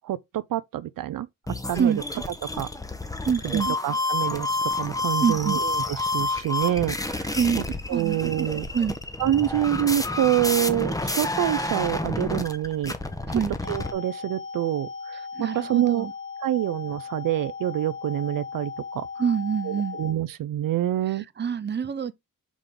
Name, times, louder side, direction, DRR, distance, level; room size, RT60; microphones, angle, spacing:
voice 1, 0.0-2.0 2.5-2.7 3.4-7.4 7.9-8.7 9.2-12.9 13.7-16.1 16.4-19.1 19.6-21.2, right 12 dB, 75° right, 0.5 m, -27 dB
sound 1, 1.5-13.9, left 2 dB, 10° left, 1.1 m, -29 dB
voice 2, 3.3-3.7 5.2-5.6 7.4-7.6 7.9-8.5 8.7-9.0 13.3-13.5 15.4-16.1 19.2-20.0 21.4-22.1, right 7 dB, 30° right, 0.7 m, -25 dB
sound 2, 13.6-20.1, left 5 dB, 35° left, 1.0 m, -37 dB
6.2 x 5.2 x 3.8 m
cardioid pair, 110°, 34 cm